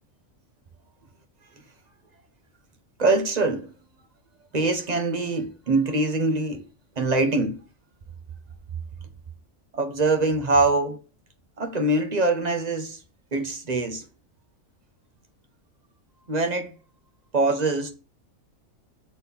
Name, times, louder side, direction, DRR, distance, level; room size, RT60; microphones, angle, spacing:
voice 1, 3.0-3.7 4.5-6.6 7.0-7.6 9.7-11.0 11.6-13.0 13.3-14.0 16.3-16.7 17.3-17.9, right 2 dB, 35° right, 1.2 m, -23 dB
6.6 x 4.5 x 5.3 m
omnidirectional pair, 1.4 m